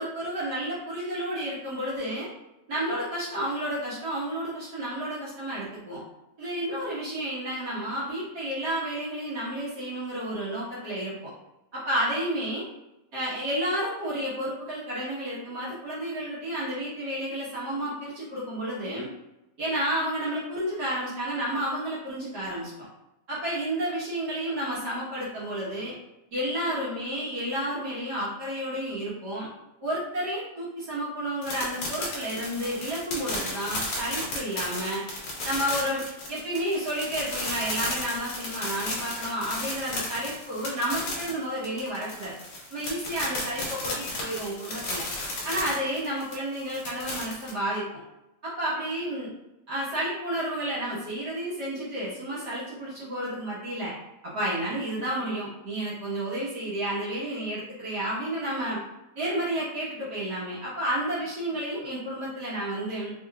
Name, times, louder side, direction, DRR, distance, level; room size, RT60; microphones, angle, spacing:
voice 1, 0.0-2.3 2.7-6.0 6.4-11.3 11.7-12.6 13.1-19.1 19.6-22.7 23.3-25.9 26.3-29.5 29.8-35.0 35.4-36.0 36.3-42.3 42.7-45.0 45.4-47.8 48.4-49.3 49.7-53.9 54.2-58.8 59.1-63.1, right 1 dB, 50° right, -8 dB, 1.2 m, -31 dB
sound 1, 31.4-47.5, left 2 dB, 55° left, 2.0 m, -34 dB
5.2 x 3.3 x 2.3 m, 0.94 s
omnidirectional pair, 3.4 m